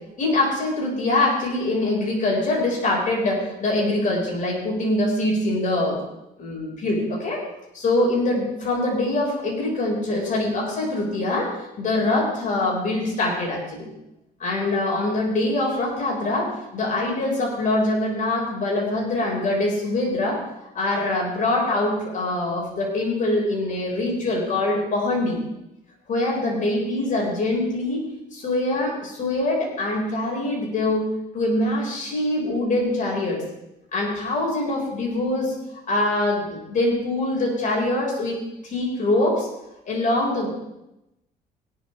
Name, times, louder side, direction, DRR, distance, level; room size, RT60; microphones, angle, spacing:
voice 1, 0.2-6.0 6.4-7.4 7.7-13.9 14.4-20.4 20.7-25.4 26.1-28.0 28.3-31.1 31.3-33.4 33.9-35.5 35.9-39.5 39.9-40.5, left 2 dB, 50° left, -2 dB, 6.4 m, -24 dB
17.5 x 12.0 x 3.8 m, 0.89 s
cardioid pair, 110°, 17 cm